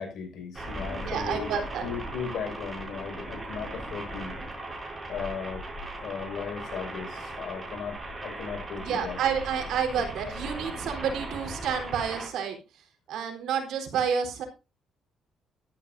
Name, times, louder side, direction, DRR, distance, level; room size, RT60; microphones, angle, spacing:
voice 1, 0.0-4.4 5.1-5.6 6.0-9.2 9.9-10.0, left 6 dB, 75° left, 5 dB, 5.5 m, -37 dB
sound 1, 0.5-12.3, right 1 dB, 20° right, 6.2 m, -38 dB
voice 2, 1.0-1.9 8.8-12.6 13.1-14.4, right 7 dB, 80° right, 3 dB, 3.9 m, -29 dB
14.5 x 13.0 x 2.7 m, 0.29 s
cardioid pair, 90°, 0 cm